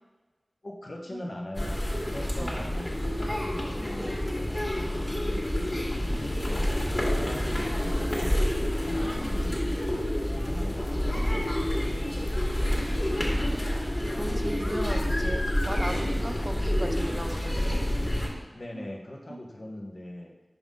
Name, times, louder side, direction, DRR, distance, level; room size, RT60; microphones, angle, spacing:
voice 1, 0.6-1.8 2.1-10.1 10.4-12.5 18.5-20.3, left 1 dB, 60° left, -1 dB, 1.1 m, -42 dB
sound 1, 1.1-1.2 2.3-3.4 3.6-3.7 4.0-4.2 4.6-4.7 5.7-6.7 6.9-7.0 7.4-7.5 7.9-8.0 8.6-8.7 9.2-10.6 10.9-11.0 11.3-11.4 11.9-12.0 12.7-14.2 14.5-14.6 14.9-15.0 15.4-15.5 16.1-16.2 17.0-18.1 18.3-18.4 18.7-18.9 19.3-19.4, right 2 dB, 85° right, 0.7 m, -45 dB
sound 2, 1.5-18.3, left 1 dB, 35° left, 2.0 m, -28 dB
voice 2, 2.4-2.7 7.3-7.6 14.2-17.6, right 1 dB, 30° right, 3 dB, 0.7 m, -36 dB
5.7 x 5.4 x 3.7 m, 1.2 s
wide cardioid pair, 45°, 0 cm